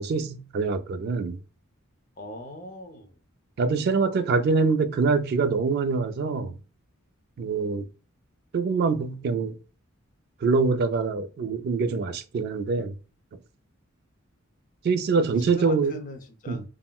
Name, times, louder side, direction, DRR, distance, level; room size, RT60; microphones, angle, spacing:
voice 1, 0.0-1.4 3.6-6.5 7.4-7.8 8.5-9.6 10.4-12.9 14.8-16.0 16.5-16.6, right 4 dB, 50° right, 0.3 m, -24 dB
voice 2, 2.2-3.1 15.2-16.6, left 1 dB, 40° left, 0.5 m, -40 dB
3.6 x 2.0 x 2.2 m
head